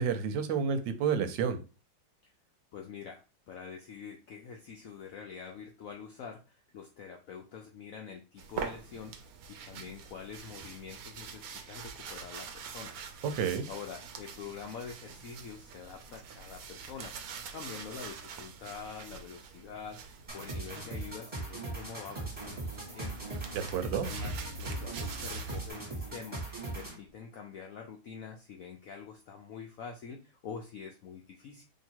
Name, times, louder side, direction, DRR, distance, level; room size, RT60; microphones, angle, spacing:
voice 1, 0.0-1.6 13.4-13.7 23.5-24.1, right 7 dB, 85° right, 9 dB, 1.3 m, -30 dB
voice 2, 2.7-9.1 9.5-13.0 13.7-23.1 23.9-26.4 26.7-31.6, left 6 dB, 80° left, 2 dB, 0.7 m, -46 dB
sound 1, 8.4-21.1 22.1-25.7, right 5 dB, 65° right, 0.9 m, -44 dB
sound 2, 20.3-27.1, right 2 dB, 20° right, 1.2 m, -40 dB
2.8 x 2.8 x 4.4 m, 0.32 s
omnidirectional pair, 2.0 m